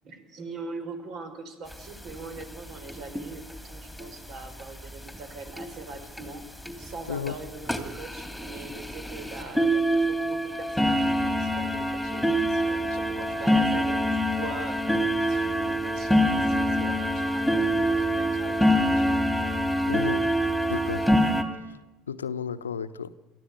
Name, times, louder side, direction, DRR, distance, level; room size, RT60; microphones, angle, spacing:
voice 1, 0.0-6.4 6.8-19.1 20.0-20.3, right 3 dB, 50° right, 8 dB, 4.6 m, -42 dB
sound 1, 1.7-1.8 2.1-2.2 2.4-2.5 2.9-3.2 4.0-4.1 4.6-4.7 5.1-5.2 5.6-5.7 6.2-6.3 6.7-6.8 7.3-7.4 7.7-21.4, equal, ahead, 3.1 m, -25 dB
voice 2, 19.9-20.2 20.7-21.1 22.1-23.1, left 7 dB, 80° left, 13 dB, 0.9 m, -32 dB
28.0 x 14.0 x 8.4 m, 1.0 s
figure-of-eight pair, 65°, 0 cm